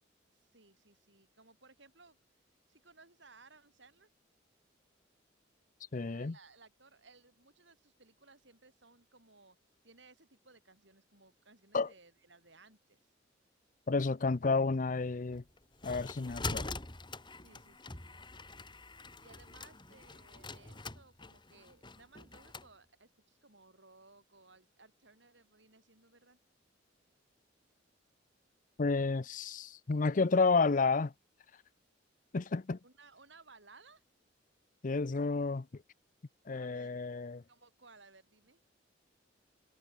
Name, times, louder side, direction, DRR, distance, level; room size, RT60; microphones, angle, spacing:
voice 1, 0.3-2.2 2.7-4.1 6.1-9.6 9.8-13.1 17.4-18.2 19.2-26.4 32.8-34.0 36.5-37.1 37.5-38.6, right 3 dB, 65° right, 7.0 m, -61 dB
voice 2, 5.9-6.3 11.7-11.9 13.9-15.4 15.8-16.7 28.8-31.1 32.3-32.8 34.8-35.7 36.5-37.4, left 4 dB, 40° left, 0.6 m, -31 dB
sound 1, 15.3-22.7, left 3 dB, 25° left, 3.0 m, -44 dB
head